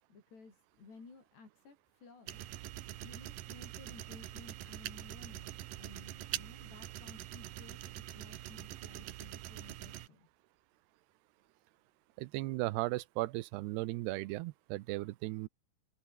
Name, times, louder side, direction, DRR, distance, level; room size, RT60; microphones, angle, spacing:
voice 1, 0.1-2.4 3.0-5.5 5.8-10.3, left 4 dB, 80° left, 10.5 m, -56 dB
sound 1, 2.3-10.1, right 14 dB, 65° right, 2.4 m, -44 dB
voice 2, 12.2-15.5, right 19 dB, 85° right, 2.8 m, -36 dB
open air
omnidirectional pair, 4.7 m